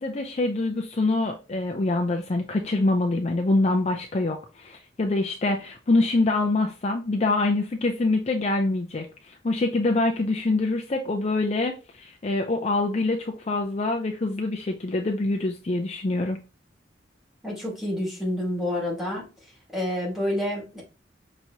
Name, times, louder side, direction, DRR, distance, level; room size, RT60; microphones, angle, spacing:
voice 1, 0.0-16.4, left 2 dB, 35° left, 0.5 m, -25 dB
voice 2, 17.4-19.3 19.7-20.8, left 1 dB, 5° right, 2.2 m, -28 dB
5.8 x 3.0 x 2.7 m
head